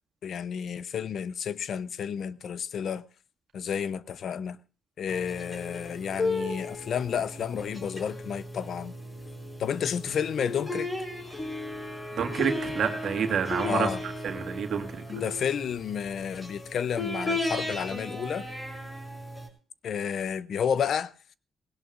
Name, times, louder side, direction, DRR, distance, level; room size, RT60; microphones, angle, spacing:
voice 1, 0.2-3.0 3.5-4.6 5.0-8.9 9.6-10.9 13.6-14.0 15.1-18.5 19.8-21.3, left 7 dB, 70° left, 0.6 m, -31 dB
sound 1, 5.1-19.5, left 2 dB, 25° left, 5.2 m, -35 dB
voice 2, 12.1-13.9 14.2-14.9 15.1-15.2, right 7 dB, 75° right, 1.9 m, -28 dB
19.5 x 17.0 x 2.5 m
cardioid pair, 90°, 0 cm